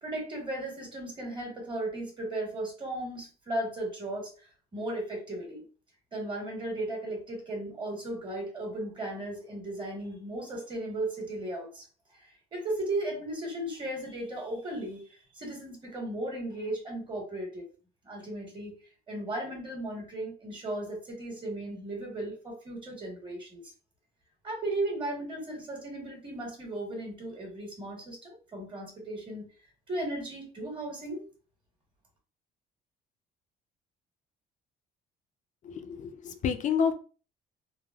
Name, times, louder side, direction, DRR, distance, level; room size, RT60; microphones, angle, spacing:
voice 1, 0.0-5.6 6.1-11.9 12.1-17.7 18.0-18.8 19.1-23.6 24.4-29.5 29.9-31.2, right 1 dB, 30° right, 0 dB, 1.3 m, -36 dB
voice 2, 35.6-36.9, left 7 dB, 50° left, 7 dB, 0.5 m, -29 dB
3.2 x 2.0 x 2.3 m, 0.37 s
cardioid pair, 110°, 17 cm